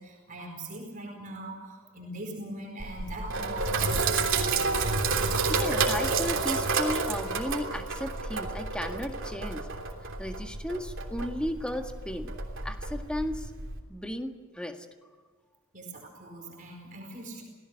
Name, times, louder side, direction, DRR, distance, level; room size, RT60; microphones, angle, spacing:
voice 1, 0.0-4.3 15.7-17.4, right 1 dB, 40° right, 0 dB, 4.7 m, -41 dB
Sink (filling or washing), 2.8-13.8, right 4 dB, 60° right, 3.2 m, -30 dB
voice 2, 5.5-9.7 10.2-12.3 12.6-13.5 13.9-14.9, equal, 5° left, 4 dB, 1.7 m, -35 dB
27.5 x 18.0 x 6.5 m, 1.5 s
head